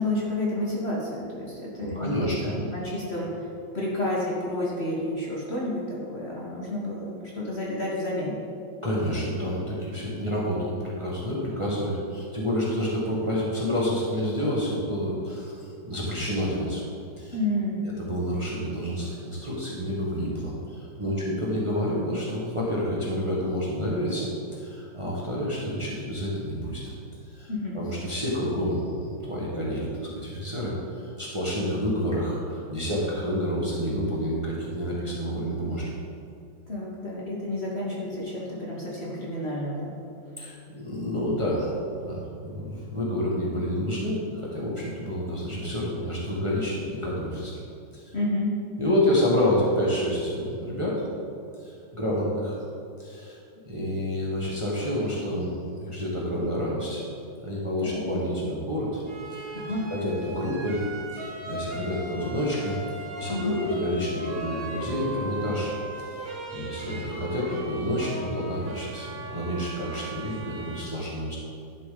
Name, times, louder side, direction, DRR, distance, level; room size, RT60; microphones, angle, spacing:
voice 1, 0.0-8.4 17.3-17.8 21.0-21.2 27.5-27.8 36.7-40.0 48.1-48.5 57.8-58.0 59.5-59.9 63.3-63.5, left 1 dB, 40° left, -5 dB, 1.4 m, -30 dB
voice 2, 1.8-2.6 8.8-16.8 17.2-17.4 18.0-26.8 27.3-27.5 27.7-35.8 40.4-41.7 42.0-47.6 47.9-48.1 48.8-51.1 51.6-52.6 53.0-53.4 53.6-57.0 57.4-59.0 59.3-59.5 59.9-60.8 61.1-65.7 66.2-71.4, equal, 20° right, -5 dB, 1.4 m, -29 dB
sound 1, 59.1-70.8, right 2 dB, 50° right, 1.6 m, -38 dB
11.0 x 7.1 x 3.9 m, 2.5 s
omnidirectional pair, 2.1 m